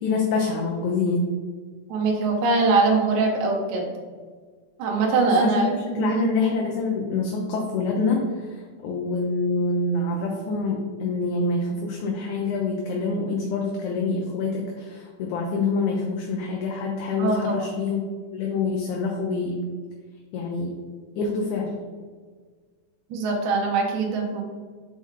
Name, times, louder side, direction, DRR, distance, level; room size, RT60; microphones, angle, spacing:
voice 1, 0.0-1.2 5.2-18.0 18.3-19.6 20.3-20.7 21.2-21.7, left 3 dB, 75° left, 0 dB, 2.0 m, -26 dB
voice 2, 1.9-3.9 4.8-6.2 17.2-17.8 23.1-24.4, right 3 dB, 70° right, 0 dB, 2.1 m, -22 dB
5.4 x 4.9 x 3.7 m, 1.5 s
omnidirectional pair, 3.6 m